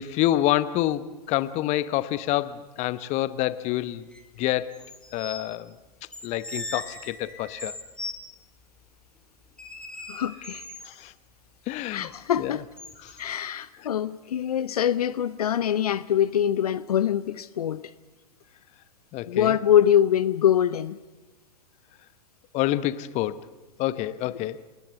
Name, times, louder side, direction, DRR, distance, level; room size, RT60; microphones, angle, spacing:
voice 1, 0.0-4.1 4.4-4.8 5.1-5.7 6.2-7.7 10.8-11.1 11.7-12.1 12.4-12.6 13.0-13.2 19.1-19.6 22.5-23.4 23.8-24.6, left 14 dB, 35° left, 1.0 m, -27 dB
sound 1, 4.1-4.2 4.7-5.4 6.1-8.2 9.6-10.9 12.8-13.2, left 1 dB, 5° left, 2.6 m, -39 dB
voice 2, 10.1-10.7 11.9-12.6 13.2-17.9 19.3-21.0, left 10 dB, 70° left, 0.7 m, -24 dB
28.5 x 19.0 x 7.0 m
figure-of-eight pair, 105°, 20 cm